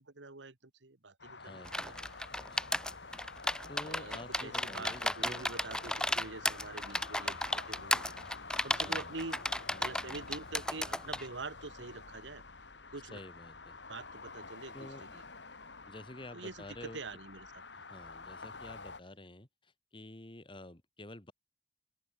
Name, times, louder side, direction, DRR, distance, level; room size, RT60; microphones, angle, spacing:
voice 1, 0.0-2.2 3.5-8.2 8.6-9.4 9.7-12.4 12.9-13.2 13.9-15.2 16.3-17.6, right 3 dB, 80° right, 1.8 m, -46 dB
sound 1, 1.2-19.0, left 4 dB, 70° left, 3.5 m, -49 dB
voice 2, 1.4-2.7 3.7-5.4 8.8-9.2 13.1-13.8 14.7-15.0 15.9-17.0 17.7-21.3, left 1 dB, 30° left, 2.8 m, -50 dB
sound 2, 1.7-11.3, left 1 dB, 5° left, 1.4 m, -34 dB
open air
head